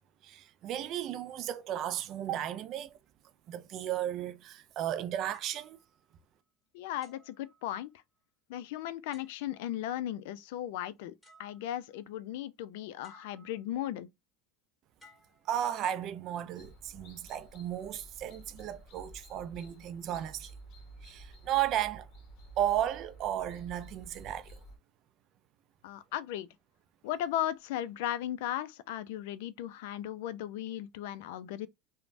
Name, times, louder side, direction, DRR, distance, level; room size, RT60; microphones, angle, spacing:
voice 1, 0.2-3.0 3.5-5.8 15.5-20.5 21.0-22.1 22.6-24.6, right 11 dB, 50° right, 0.3 m, -34 dB
sound 1, 5.3-6.5 7.0-8.2 9.1-9.8 10.9-11.0 11.2-12.0 13.0-13.8 15.0-16.1 16.8-17.1, left 1 dB, 10° left, 1.7 m, -62 dB
voice 2, 6.7-7.9 8.5-11.1 11.4-14.1 25.8-26.5 27.0-31.7, left 12 dB, 75° left, 0.3 m, -36 dB
sound 2, 16.6-24.8, right 2 dB, 50° left, 0.9 m, -52 dB
3.1 x 2.1 x 2.5 m
supercardioid pair, 115°, 0 cm